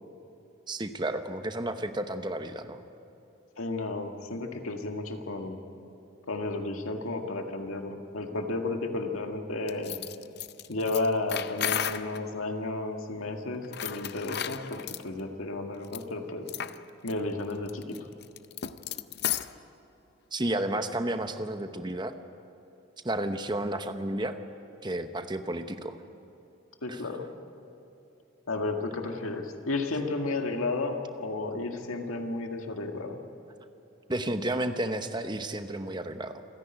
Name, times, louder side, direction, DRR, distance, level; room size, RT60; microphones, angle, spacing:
voice 1, 0.7-2.8 20.3-22.1 23.0-24.4 24.8-26.0 26.9-27.0 34.1-36.4, right 1 dB, 20° right, 8 dB, 0.9 m, -32 dB
voice 2, 3.6-5.6 6.3-10.0 10.7-16.5 17.0-18.0 26.8-27.3 28.5-33.2, left 2 dB, 90° left, 3 dB, 1.9 m, -32 dB
sound 1, 9.7-12.2 13.6-15.0 15.8-16.0 16.5-16.8 17.1-17.2 17.5-19.6, left 10 dB, 50° left, 0.6 m, -34 dB
27.5 x 10.5 x 10.0 m, 2.8 s
head